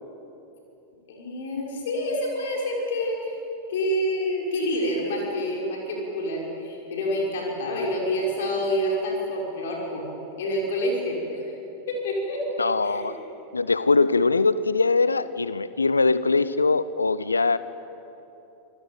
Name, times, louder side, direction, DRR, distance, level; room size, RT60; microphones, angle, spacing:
voice 1, 1.1-3.4 3.7-10.0 10.4-11.5 11.9-13.1, equal, 55° left, -1 dB, 5.7 m, -27 dB
voice 2, 12.6-13.2 13.5-17.6, left 3 dB, 80° left, 16 dB, 0.6 m, -22 dB
28.0 x 19.0 x 9.0 m, 3.0 s
figure-of-eight pair, 90°, 0 cm